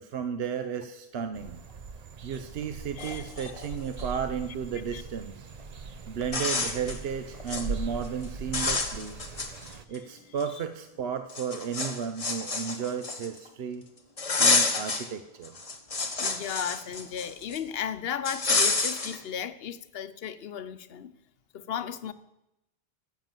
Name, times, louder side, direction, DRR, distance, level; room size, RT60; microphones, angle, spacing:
voice 1, 0.0-1.6 2.2-5.5 6.1-9.2 9.9-13.8 14.4-15.6, right 7 dB, 75° right, 0.9 m, -34 dB
sound 1, 1.3-9.8, right 3 dB, 45° right, 0.7 m, -40 dB
sound 2, 2.6-2.7 3.0-4.1 5.6-5.7 6.2-7.0 7.3-7.7 8.0-8.2 8.5-10.0 10.4-10.5 11.3-13.5 14.2-15.1 15.4-17.6 18.2-19.2, left 3 dB, 35° left, 1.1 m, -29 dB
voice 2, 3.0-3.5 4.9-5.0 16.2-21.1 21.5-22.1, left 8 dB, 70° left, 0.9 m, -35 dB
13.0 x 7.1 x 7.4 m
omnidirectional pair, 1.0 m